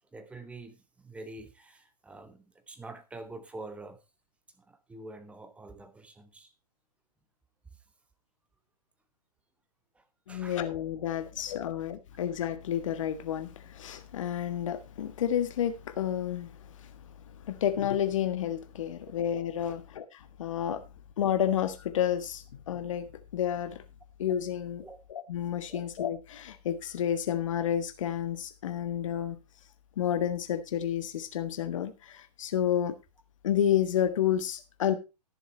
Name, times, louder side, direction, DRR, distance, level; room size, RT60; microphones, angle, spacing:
voice 1, 0.1-4.0 4.6-6.5 7.7-7.8 9.9-10.6 11.2-11.3 19.7-19.8 24.8-25.0 25.7-25.8, right 2 dB, 5° right, 1.2 m, -46 dB
voice 2, 10.3-16.9 17.4-20.0 20.4-20.8 21.2-23.1 23.3-23.8 24.2-24.8 25.1-29.4 30.0-32.9 33.4-34.9, left 10 dB, 50° left, 1.6 m, -30 dB
15.0 x 7.1 x 4.2 m
figure-of-eight pair, 115°, 21 cm